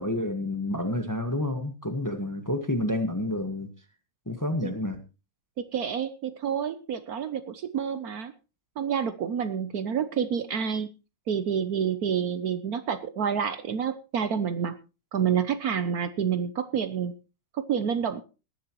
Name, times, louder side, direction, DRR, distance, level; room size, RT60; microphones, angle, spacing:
voice 1, 0.0-3.7 4.3-5.0, left 1 dB, 10° left, 7 dB, 1.1 m, -29 dB
voice 2, 5.7-8.3 8.8-10.9 11.3-14.7 15.1-17.1 17.5-18.2, right 7 dB, 60° right, 12 dB, 1.2 m, -28 dB
19.5 x 11.0 x 3.0 m, 0.31 s
omnidirectional pair, 2.0 m